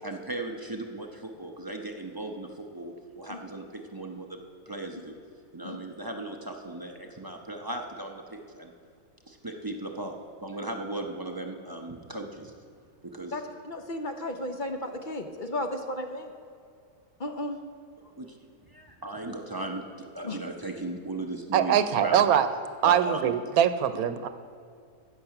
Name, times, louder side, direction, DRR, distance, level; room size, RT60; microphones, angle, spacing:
voice 1, 0.0-4.4 4.7-5.2 5.5-8.7 9.3-12.5 13.0-13.3 18.2-18.4 18.7-22.2 22.8-23.3, right 2 dB, 25° right, 2 dB, 0.5 m, -37 dB
voice 2, 13.3-16.3 17.2-17.6 20.2-20.4, left 1 dB, 45° left, 5 dB, 0.6 m, -34 dB
voice 3, 21.5-22.5 22.8-24.3, right 9 dB, 85° right, 11 dB, 1.1 m, -23 dB
15.5 x 6.8 x 5.8 m, 2.4 s
omnidirectional pair, 1.5 m